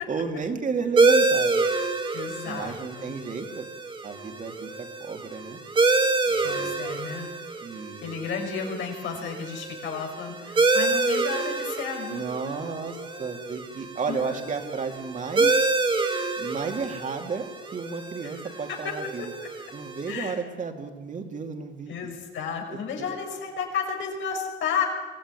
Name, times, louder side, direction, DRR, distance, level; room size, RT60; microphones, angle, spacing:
voice 1, 0.1-1.7 2.4-3.7 4.0-5.6 6.3-6.8 7.6-8.2 12.1-15.7 16.4-19.2 19.7-21.9 23.0-23.1, right 5 dB, 40° right, 4 dB, 2.7 m, -33 dB
sound 1, 1.0-20.1, right 3 dB, 25° right, 2.2 m, -27 dB
voice 2, 2.1-3.1 6.4-7.3 8.0-13.4 14.1-14.5 18.2-19.3 20.1-20.4 21.9-24.9, left 6 dB, 85° left, 2 dB, 6.2 m, -33 dB
24.0 x 17.5 x 9.8 m, 1.2 s
cardioid pair, 130°, 19 cm